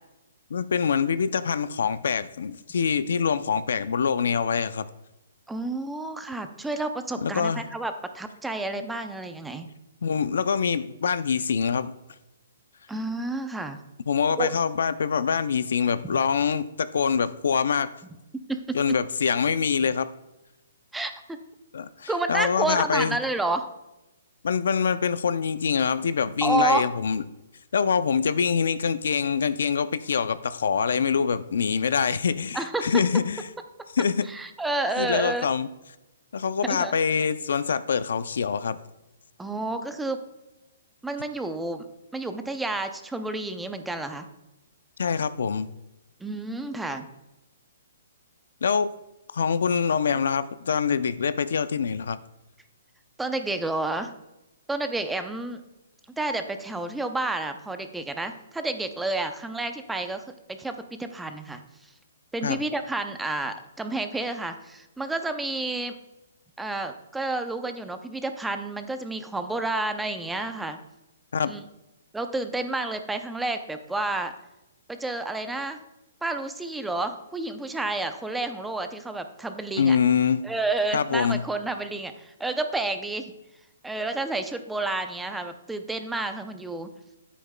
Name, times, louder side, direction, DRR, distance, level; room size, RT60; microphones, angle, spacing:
voice 1, 0.5-4.8 7.2-7.6 10.0-11.9 14.1-17.9 18.7-20.1 21.7-23.2 24.4-27.2 27.7-33.4 33.9-34.3 35.0-35.7 36.3-38.8 45.0-45.7 48.6-48.9 49.3-52.2 62.4-62.6 71.3-71.5 79.8-80.4 80.9-81.4, left 6 dB, 75° left, 14 dB, 0.4 m, -25 dB
voice 2, 5.5-9.7 12.9-13.8 14.4-14.5 18.5-18.8 20.9-21.4 22.1-23.7 26.4-26.9 32.5-33.0 34.2-35.5 36.6-36.9 39.4-40.2 41.0-41.8 42.1-44.3 46.2-47.1 53.2-54.1 54.7-55.6 56.2-60.2 60.5-61.6 62.3-65.9 66.6-70.8 71.5-71.6 72.1-74.3 74.9-75.8 76.2-80.0 80.4-83.3 83.8-86.9, right 2 dB, 5° right, 8 dB, 0.5 m, -30 dB
10.0 x 8.4 x 2.2 m, 0.96 s
hypercardioid pair, 150°, 0 cm